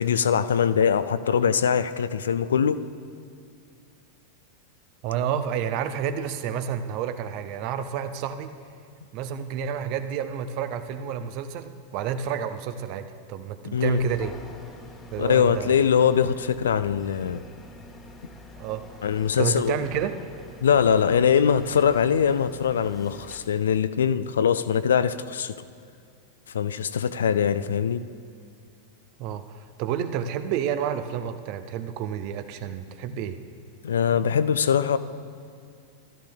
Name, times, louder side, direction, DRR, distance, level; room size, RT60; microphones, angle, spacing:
voice 1, 0.0-2.8 13.7-14.0 15.2-17.4 19.0-19.9 20.6-25.5 26.5-28.0 33.8-35.0, left 7 dB, 65° left, 13 dB, 0.3 m, -22 dB
voice 2, 5.0-8.5 9.1-14.3 15.1-15.8 18.6-18.8 19.4-20.2 29.2-33.4, right 8 dB, 45° right, 10 dB, 0.6 m, -30 dB
sound 1, 13.8-23.4, left 2 dB, 20° left, 1.1 m, -46 dB
16.5 x 12.5 x 2.3 m, 2.4 s
figure-of-eight pair, 90°, 0 cm